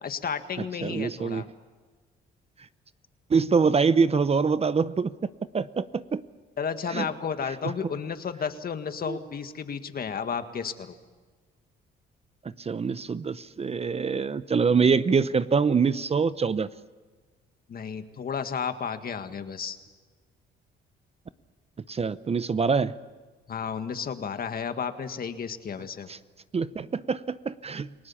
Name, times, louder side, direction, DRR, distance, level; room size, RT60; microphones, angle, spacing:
voice 1, 0.0-1.5 6.6-10.9 17.7-19.8 23.5-26.1, left 6 dB, 50° left, 9 dB, 1.8 m, -32 dB
voice 2, 0.8-1.5 3.3-5.1 5.5-6.2 6.9-7.1 7.6-7.7 9.1-9.2 12.6-16.7 21.9-23.0 26.1-26.2 26.5-27.9, right 5 dB, 30° right, 15 dB, 0.7 m, -24 dB
29.5 x 18.5 x 7.2 m, 1.4 s
cardioid pair, 90°, 20 cm